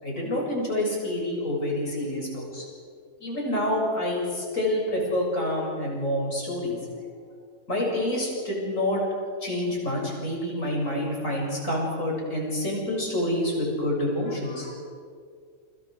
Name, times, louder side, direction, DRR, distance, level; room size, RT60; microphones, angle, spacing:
voice 1, 0.0-2.6 3.2-6.8 7.7-9.0 9.4-14.8, left 1 dB, 80° left, -3 dB, 7.7 m, -27 dB
29.0 x 26.5 x 5.0 m, 2.1 s
omnidirectional pair, 1.4 m